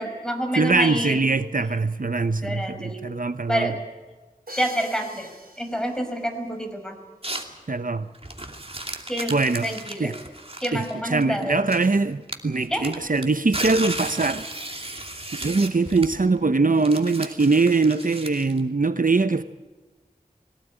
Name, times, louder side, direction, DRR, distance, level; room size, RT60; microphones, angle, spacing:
voice 1, 0.0-1.3 2.4-3.1 3.5-3.8 4.6-5.3 5.6-7.0 9.1-9.4 9.6-10.2 10.6-11.7 12.7-12.9, equal, 5° left, 5.3 m, -28 dB
voice 2, 0.6-3.7 7.7-8.1 9.3-9.7 10.0-10.1 10.7-10.8 11.1-14.4 15.3-19.4, right 3 dB, 65° right, 0.9 m, -22 dB
Crash cymbal, 4.5-6.3, equal, 90° right, 2.8 m, -43 dB
sound 1, 7.2-7.6 8.1-12.0 12.3-18.6, right 1 dB, 40° right, 2.6 m, -34 dB
22.0 x 18.0 x 9.2 m
wide cardioid pair, 45°, 15 cm